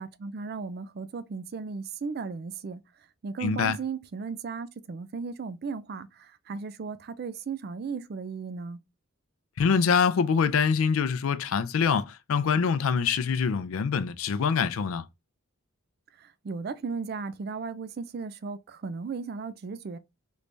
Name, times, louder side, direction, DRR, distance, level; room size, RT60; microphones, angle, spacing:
voice 1, 0.0-2.8 3.2-8.8 16.2-20.0, right 5 dB, 50° right, 0.4 m, -36 dB
voice 2, 3.4-3.8 9.6-15.0, left 6 dB, 80° left, 0.4 m, -25 dB
3.3 x 3.1 x 2.5 m
head